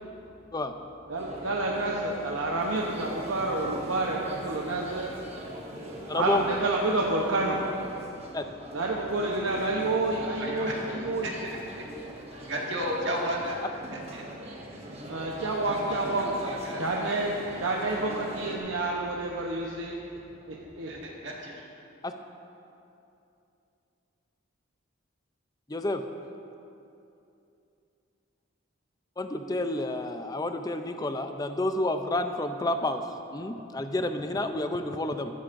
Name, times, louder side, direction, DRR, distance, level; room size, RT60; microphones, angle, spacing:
voice 1, 1.1-5.1 6.1-7.6 8.7-11.3 15.1-16.3 16.8-17.3 17.6-20.0 20.5-20.9, right 2 dB, 85° right, -2 dB, 0.9 m, -29 dB
sound 1, 1.2-18.6, equal, 30° right, 1.4 m, -42 dB
voice 2, 6.1-6.5 8.3-8.4 22.0-22.1 25.7-26.0 29.2-33.0 33.3-35.3, left 2 dB, 20° left, 7 dB, 0.5 m, -29 dB
voice 3, 10.2-11.8 12.4-13.6 13.9-14.2 15.7-16.9 20.9-21.6, equal, 60° right, -2 dB, 1.9 m, -34 dB
15.0 x 13.0 x 2.6 m, 2.7 s
head